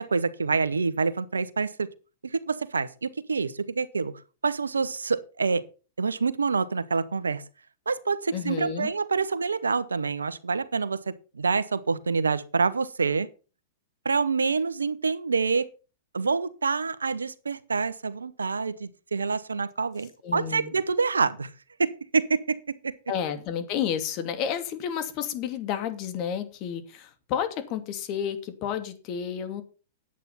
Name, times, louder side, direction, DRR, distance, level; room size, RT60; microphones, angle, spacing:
voice 1, 0.0-1.9 2.2-4.1 4.4-5.6 6.0-7.4 7.9-13.3 14.0-15.7 16.1-21.5 21.8-22.9, right 4 dB, 90° right, 0.9 m, -27 dB
voice 2, 8.3-8.9 20.2-20.7 23.1-29.6, left 8 dB, 45° left, 2.6 m, -31 dB
10.5 x 8.6 x 5.6 m
hypercardioid pair, 110°, 0 cm